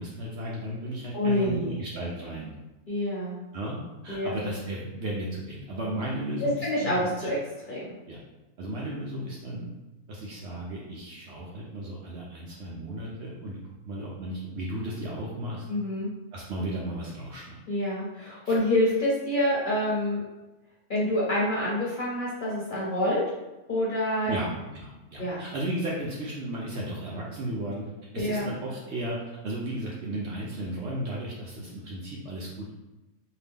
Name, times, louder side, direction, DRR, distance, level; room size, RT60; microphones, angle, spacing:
voice 1, 0.0-2.5 3.5-7.1 8.1-8.2 8.6-9.7 10.1-13.6 13.9-15.6 16.3-17.6 18.4-18.5 24.3-27.8 28.1-29.2 29.4-32.7, right 1 dB, 65° right, -4 dB, 0.7 m, -34 dB
voice 2, 1.1-1.8 2.9-3.4 4.1-4.5 6.4-7.4 7.7-7.9 15.7-16.1 17.7-20.2 20.9-23.2 23.7-24.3 25.2-25.4 28.2-28.5, left 1 dB, 45° left, -7 dB, 0.7 m, -27 dB
2.7 x 2.2 x 3.4 m, 1.1 s
omnidirectional pair, 1.5 m